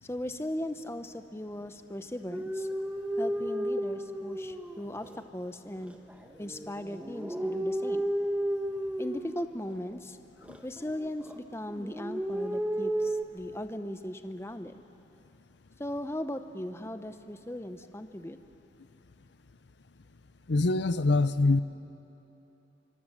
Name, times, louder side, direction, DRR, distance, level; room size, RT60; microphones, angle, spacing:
voice 1, 0.0-2.7 3.2-6.0 6.4-8.1 9.0-10.2 10.6-14.8 15.8-18.4, left 1 dB, 15° left, 9 dB, 0.7 m, -38 dB
sound 1, 2.3-5.2 5.8-10.0 10.4-11.4 11.7-13.2, right 1 dB, 5° right, 1.2 m, -33 dB
voice 2, 20.5-21.6, left 3 dB, 70° left, 13 dB, 0.7 m, -24 dB
26.0 x 24.5 x 7.8 m, 3.0 s
head